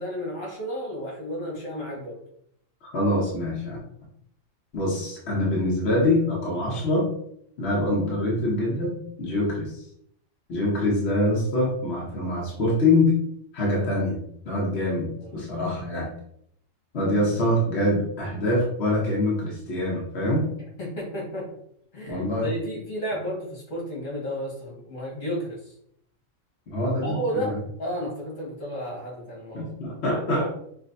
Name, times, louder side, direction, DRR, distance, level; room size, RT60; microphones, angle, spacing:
voice 1, 0.0-2.2 15.2-15.4 20.8-21.5 21.9-25.7 27.0-27.5 27.8-29.7, equal, 80° left, -4 dB, 1.9 m, -32 dB
voice 2, 2.8-3.8 4.7-7.1 7.6-9.8 10.5-13.2 13.5-16.1 16.9-20.5 22.1-22.5 26.7-27.6 29.5-30.5, left 1 dB, 60° left, -4 dB, 1.3 m, -25 dB
6.1 x 2.1 x 2.6 m, 0.70 s
omnidirectional pair, 1.3 m